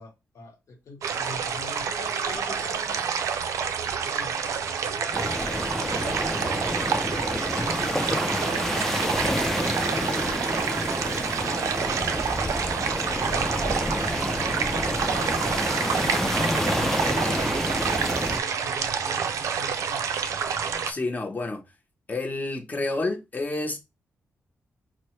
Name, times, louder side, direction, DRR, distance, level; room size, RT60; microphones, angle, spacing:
voice 1, 0.0-3.0 3.7-8.1 8.8-12.2 13.0-13.9 14.3-20.1, left 3 dB, 75° left, 1.2 m, -45 dB
sound 1, 1.0-20.9, right 7 dB, 85° right, 0.5 m, -28 dB
sound 2, 5.1-18.4, left 1 dB, 5° left, 0.4 m, -28 dB
voice 2, 20.9-21.6 22.1-23.8, left 2 dB, 30° left, 0.9 m, -29 dB
4.4 x 2.0 x 3.1 m
cardioid pair, 75°, 5 cm